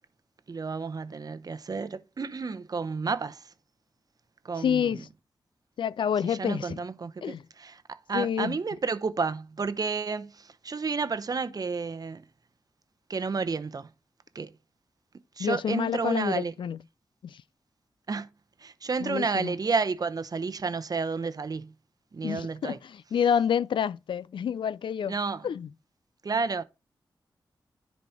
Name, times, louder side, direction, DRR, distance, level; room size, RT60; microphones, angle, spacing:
voice 1, 0.5-3.5 4.4-5.0 6.2-12.2 13.1-13.9 14.3-14.5 15.4-16.5 18.1-18.3 18.6-21.7 22.1-22.8 25.1-25.5 26.2-26.6, right 4 dB, 50° right, 0.8 m, -31 dB
voice 2, 4.6-5.0 5.8-6.8 7.2-7.4 8.1-8.6 15.4-16.8 17.2-17.4 19.0-19.5 22.2-22.8 23.1-25.1 25.4-25.7, left 8 dB, 75° left, 0.4 m, -28 dB
10.5 x 4.2 x 4.5 m
cardioid pair, 65°, 8 cm